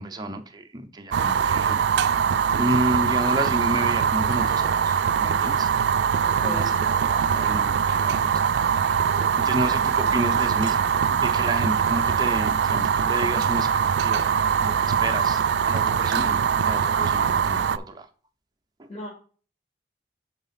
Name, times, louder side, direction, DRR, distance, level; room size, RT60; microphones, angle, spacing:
voice 1, 0.0-1.8 2.5-5.7 6.4-8.8 9.4-18.1, right 1 dB, 20° right, 0.6 m, -31 dB
Fire, 1.1-17.8, right 7 dB, 70° right, 0.3 m, -22 dB
voice 2, 6.2-6.7 18.9-19.1, left 1 dB, 30° left, 1.6 m, -36 dB
6.6 x 4.1 x 5.7 m
head